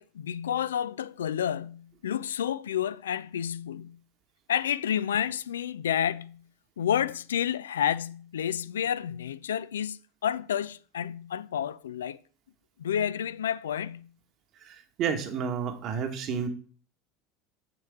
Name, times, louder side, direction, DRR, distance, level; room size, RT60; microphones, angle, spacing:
voice 1, 0.0-4.0 4.5-6.4 6.8-12.2 12.8-14.1, left 9 dB, 80° left, 0.3 m, -30 dB
voice 2, 14.6-16.5, right 7 dB, 50° right, 1.6 m, -31 dB
7.7 x 7.6 x 3.6 m
hypercardioid pair, 75°, 0 cm